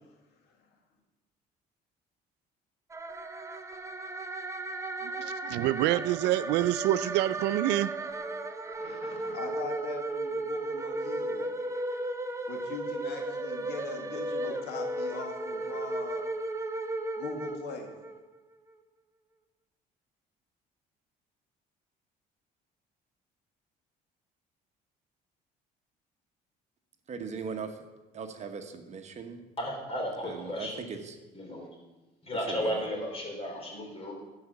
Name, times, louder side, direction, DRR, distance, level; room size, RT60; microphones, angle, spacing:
sound 1, 2.9-18.2, right 2 dB, 15° right, 0.7 m, -35 dB
voice 1, 5.2-7.9, right 14 dB, 85° right, 15 dB, 0.4 m, -27 dB
voice 2, 8.8-11.5 12.5-16.2 17.2-17.9, left 5 dB, 85° left, 3 dB, 1.8 m, -41 dB
voice 3, 27.1-27.9 28.1-29.4 30.2-31.2 32.3-32.9, right 5 dB, 40° right, 6 dB, 1.1 m, -39 dB
voice 4, 29.6-30.8 31.3-31.7 32.2-34.1, equal, 35° left, 0 dB, 3.3 m, -34 dB
12.5 x 4.9 x 7.0 m, 1.1 s
cardioid pair, 110°, 17 cm